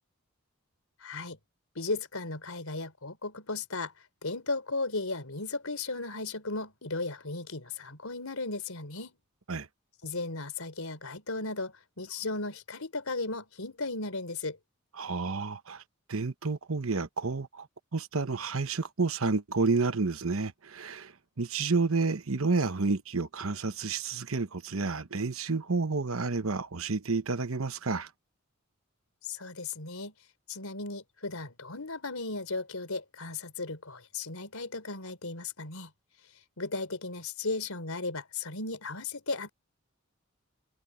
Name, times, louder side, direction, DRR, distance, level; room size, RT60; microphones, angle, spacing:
voice 1, 1.0-1.4 1.8-3.9 4.2-9.2 10.0-14.6 29.2-30.1 30.5-35.9 36.6-39.5, left 3 dB, 85° left, 3.8 m, -36 dB
voice 2, 15.0-15.8 16.1-17.7 17.9-28.1, right 4 dB, 75° right, 1.0 m, -30 dB
head